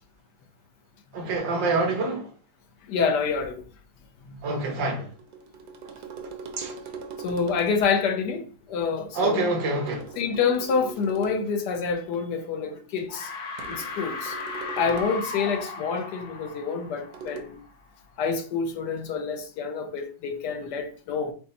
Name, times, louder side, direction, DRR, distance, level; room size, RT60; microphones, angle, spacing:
voice 1, 1.1-2.3 4.4-5.1 6.6-6.7 9.2-10.1, right 2 dB, 90° right, 1.7 m, -26 dB
voice 2, 2.9-3.6 4.3-4.4 7.2-9.5 10.2-13.3 13.7-14.3 14.8-17.6 18.2-21.3, left 5 dB, 70° left, 1.2 m, -27 dB
sound 1, 5.1-7.9 9.9-11.6 13.6-15.4 17.1-17.4, right 4 dB, 65° right, 1.2 m, -40 dB
sound 2, 12.4-12.8 13.1-17.7, left 3 dB, 90° left, 1.6 m, -36 dB
5.2 x 2.1 x 4.1 m
omnidirectional pair, 1.9 m